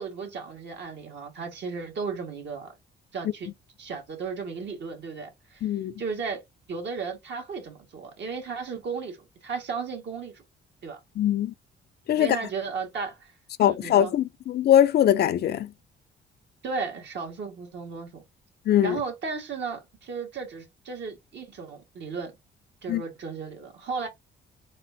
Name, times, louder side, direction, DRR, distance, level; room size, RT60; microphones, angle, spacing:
voice 1, 0.0-2.7 3.1-3.5 3.8-5.7 6.0-6.4 6.7-9.2 9.4-10.4 10.8-11.0 12.2-13.3 13.6-14.1 16.6-18.2 18.8-22.3 22.8-24.1, right 5 dB, 60° right, 1.7 m, -34 dB
voice 2, 5.6-5.9 11.2-11.5 12.1-12.4 13.6-15.7 18.7-19.0 22.9-23.0, left 11 dB, 55° left, 0.4 m, -21 dB
4.2 x 3.5 x 2.7 m
cardioid pair, 90°, 20 cm